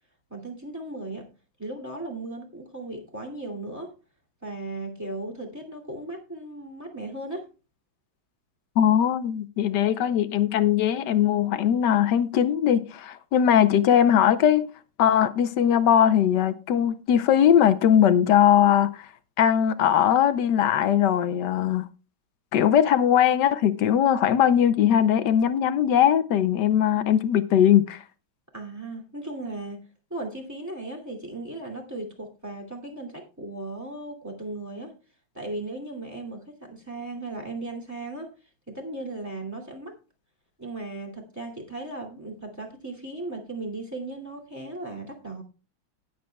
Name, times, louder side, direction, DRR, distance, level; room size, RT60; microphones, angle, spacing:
voice 1, 0.3-1.3 1.6-3.9 4.4-7.5 28.5-34.9 35.3-38.3 38.7-40.0 40.6-45.4, right 2 dB, 10° right, 2.4 m, -36 dB
voice 2, 8.8-14.7 15.0-19.1 19.4-21.9 22.5-28.0, left 9 dB, 70° left, 1.2 m, -20 dB
19.0 x 7.5 x 2.3 m
omnidirectional pair, 2.2 m